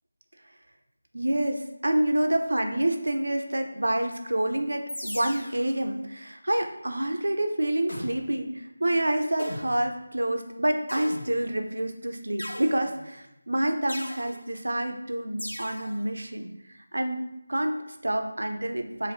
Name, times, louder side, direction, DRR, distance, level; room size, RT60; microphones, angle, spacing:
voice 1, 1.1-16.5 16.9-17.2 17.5-19.1, right 1 dB, 70° right, 5 dB, 0.5 m, -28 dB
sound 1, 4.9-5.7 7.9-8.4 9.4-9.9 10.9-11.6 12.4-13.2 13.9-14.4 15.4-16.0, left 1 dB, 75° left, 0.6 m, -38 dB
5.0 x 2.6 x 2.6 m, 0.88 s
figure-of-eight pair, 160°, 0 cm